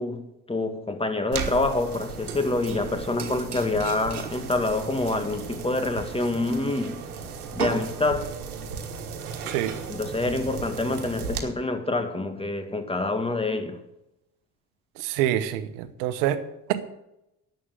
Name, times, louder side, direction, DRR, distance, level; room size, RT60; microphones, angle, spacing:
voice 1, 0.0-7.0 7.5-8.3 9.9-13.8, left 2 dB, 15° left, 1.9 m, -27 dB
sound 1, 1.3-11.4, right 6 dB, 85° right, 1.5 m, -35 dB
voice 2, 15.0-16.4 16.7-16.9, right 12 dB, 70° right, 1.2 m, -26 dB
11.0 x 7.8 x 7.7 m
hypercardioid pair, 60°, 43 cm